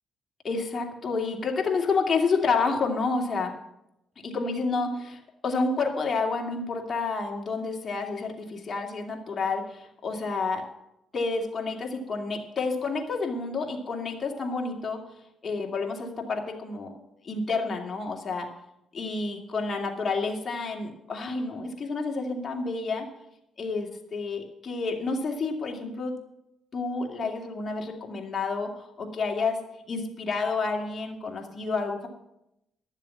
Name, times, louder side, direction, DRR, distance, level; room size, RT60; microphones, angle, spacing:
voice 1, 0.4-3.5 4.2-10.7 11.1-15.0 15.4-16.9 17.2-18.5 18.9-23.1 23.6-26.2 26.7-29.6 29.9-32.1, left 4 dB, 40° left, 1 dB, 2.5 m, -29 dB
11.5 x 7.4 x 8.5 m, 0.85 s
cardioid pair, 90°, 0 cm